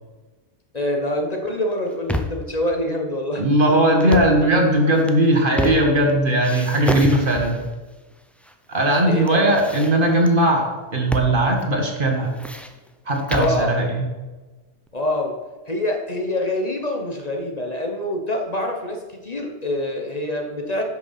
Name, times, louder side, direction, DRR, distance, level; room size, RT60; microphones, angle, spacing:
voice 1, 0.7-3.8 9.0-9.6 13.3-13.8 14.9-15.4 15.7-20.8, left 1 dB, 40° left, 2 dB, 1.1 m, -26 dB
sound 1, 1.7-2.5 3.9-4.4 4.9-6.1 6.4-7.7 8.4-9.0 9.3-10.3 11.1-11.3 11.6-11.7 12.1-13.6, left 1 dB, ahead, 0.5 m, -29 dB
voice 2, 3.4-7.6 8.7-12.3 13.1-14.0, right 1 dB, 50° right, 1 dB, 1.9 m, -18 dB
11.0 x 6.4 x 5.7 m, 1.3 s
omnidirectional pair, 1.1 m